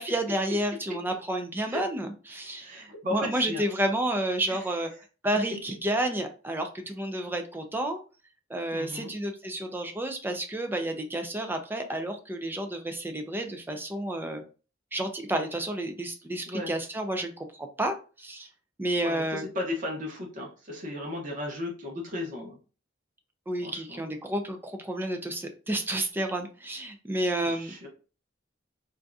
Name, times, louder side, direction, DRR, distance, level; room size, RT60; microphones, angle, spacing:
voice 1, 0.0-4.9 5.2-8.0 8.5-14.4 14.9-18.5 18.8-19.4 23.5-27.7, right 1 dB, 10° right, 5 dB, 0.4 m, -30 dB
voice 2, 2.6-3.6 4.5-4.6 8.7-9.1 16.5-16.7 19.0-22.6 23.6-24.0 27.4-27.9, left 1 dB, 45° right, -1 dB, 1.0 m, -35 dB
3.6 x 2.6 x 2.3 m, 0.35 s
head